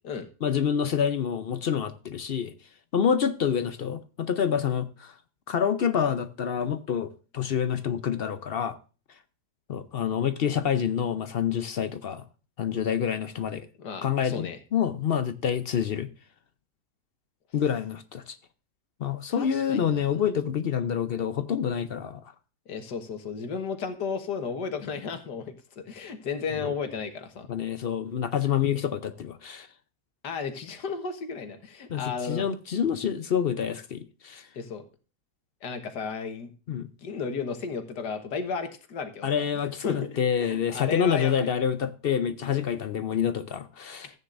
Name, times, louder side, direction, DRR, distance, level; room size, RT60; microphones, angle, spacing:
voice 1, 0.4-2.5 2.9-5.1 5.5-8.8 9.7-12.2 12.6-13.7 14.0-16.1 17.5-18.4 19.0-22.2 26.6-26.7 27.5-29.7 31.9-34.5 36.7-36.9 39.2-44.1, left 8 dB, 65° left, 0.6 m, -27 dB
voice 2, 13.8-14.6 19.3-20.2 22.7-27.5 30.2-32.5 34.6-34.9 35.6-39.5 39.8-41.5, left 5 dB, 85° left, 1.9 m, -34 dB
14.5 x 9.3 x 2.5 m
omnidirectional pair, 1.7 m